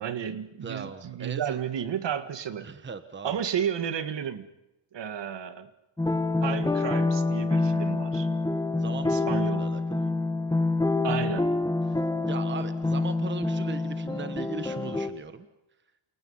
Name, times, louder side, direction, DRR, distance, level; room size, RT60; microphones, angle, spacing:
voice 1, 0.0-2.7 3.2-4.5 4.9-5.7 6.4-8.3 9.0-9.7 11.0-11.5, right 8 dB, 55° right, 10 dB, 1.9 m, -32 dB
voice 2, 0.6-1.6 2.6-3.4 8.8-9.3 9.6-10.1 12.3-15.5, right 5 dB, 20° right, 9 dB, 1.3 m, -39 dB
sound 1, 6.0-15.1, left 2 dB, 10° left, 1.4 m, -27 dB
29.0 x 28.5 x 5.7 m, 0.93 s
wide cardioid pair, 160°, 50 cm